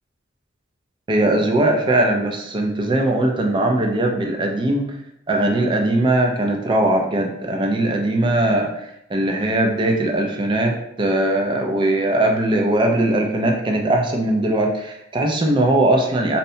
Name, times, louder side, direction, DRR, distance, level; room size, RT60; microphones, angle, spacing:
voice 1, 1.1-4.9 5.3-16.4, right 1 dB, 25° right, 2 dB, 0.3 m, -20 dB
2.7 x 2.1 x 2.6 m, 0.79 s
head